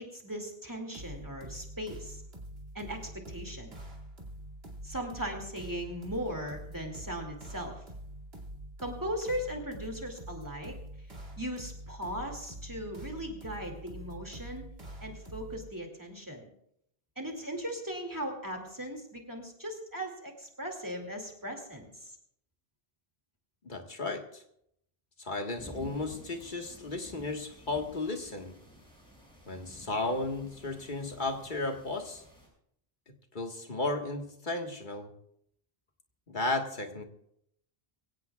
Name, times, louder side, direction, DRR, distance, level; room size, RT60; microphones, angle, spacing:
voice 1, 0.0-2.2 2.7-3.7 4.8-7.8 8.8-10.8 11.4-14.6 15.0-16.5 17.2-22.2, equal, 20° right, 2 dB, 2.4 m, -38 dB
sound 1, 0.9-15.7, right 1 dB, 75° right, 2.7 m, -45 dB
voice 2, 23.6-24.4 25.2-28.6 29.5-32.2 33.1-35.1 36.3-37.0, left 2 dB, 50° left, 4 dB, 1.7 m, -34 dB
sound 2, 25.6-32.5, equal, 5° left, 6.3 m, -52 dB
24.0 x 16.5 x 2.4 m, 0.73 s
omnidirectional pair, 1.0 m